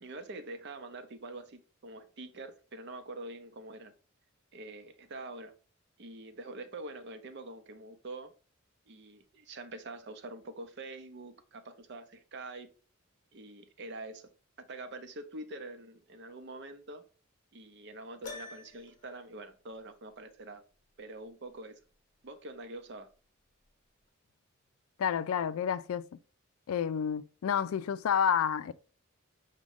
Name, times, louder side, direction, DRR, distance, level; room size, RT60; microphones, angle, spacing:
voice 1, 0.0-3.9 4.5-5.5 6.0-8.3 8.9-12.7 13.3-14.3 14.6-17.0 17.5-20.6 21.0-21.8 22.2-23.1, right 2 dB, 55° right, 0.6 m, -45 dB
Piano, 18.2-19.1, left 3 dB, 40° left, 0.8 m, -45 dB
voice 2, 25.0-26.0 26.7-28.7, left 7 dB, 85° left, 0.3 m, -29 dB
6.1 x 2.2 x 3.5 m
head